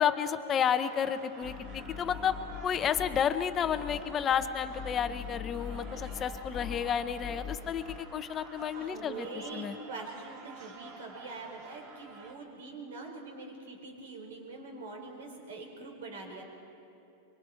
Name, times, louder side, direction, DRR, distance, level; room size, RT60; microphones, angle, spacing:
voice 1, 0.0-2.4 2.6-9.3 9.5-9.8, left 8 dB, 20° left, 10 dB, 0.8 m, -31 dB
sound 1, 0.5-12.3, right 3 dB, 40° right, 2.3 m, -50 dB
sound 2, 1.4-8.0, left 7 dB, 35° left, 1.4 m, -42 dB
voice 2, 8.8-16.4, right 3 dB, 80° right, 1 dB, 4.9 m, -44 dB
24.0 x 24.0 x 4.6 m, 2.7 s
supercardioid pair, 160°, 0 cm